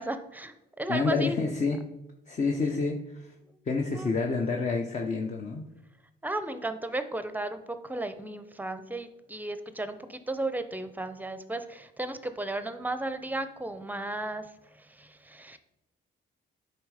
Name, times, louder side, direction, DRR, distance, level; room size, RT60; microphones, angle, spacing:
voice 1, 0.0-1.4 2.7-2.9 3.9-4.1 6.2-15.6, right 2 dB, 10° right, 10 dB, 0.7 m, -35 dB
voice 2, 0.9-1.8 2.3-3.0 3.7-5.6, left 4 dB, 40° left, 2 dB, 0.9 m, -28 dB
9.7 x 4.0 x 4.9 m, 0.93 s
cardioid pair, 90°, 20 cm